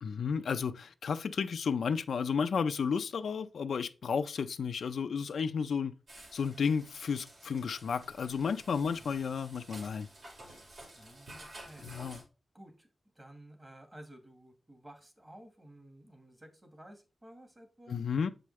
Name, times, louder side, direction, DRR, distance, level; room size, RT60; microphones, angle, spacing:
voice 1, 0.0-5.9 6.3-10.1 11.8-12.2 17.9-18.3, left 6 dB, 85° left, 0.5 m, -32 dB
sound 1, 6.1-12.2, right 1 dB, 60° right, 2.5 m, -52 dB
voice 2, 10.9-12.1 12.5-12.9 13.1-18.0, right 1 dB, 20° right, 1.6 m, -54 dB
7.6 x 4.9 x 3.2 m
wide cardioid pair, 135°, 0 cm